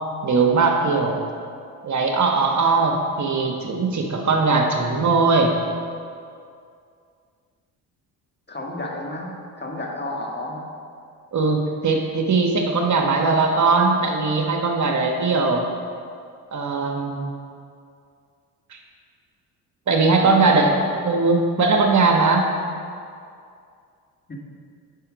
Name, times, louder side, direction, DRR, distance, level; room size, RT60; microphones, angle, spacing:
voice 1, 0.2-1.2 1.8-5.6 11.3-15.7 16.5-17.3 19.9-20.7 21.0-22.5, right 4 dB, 45° right, 2 dB, 1.2 m, -20 dB
voice 2, 8.5-10.7 20.2-20.8 24.3-24.4, left 1 dB, 25° left, -1 dB, 1.7 m, -31 dB
9.8 x 5.5 x 5.1 m, 2.4 s
supercardioid pair, 65°, 41 cm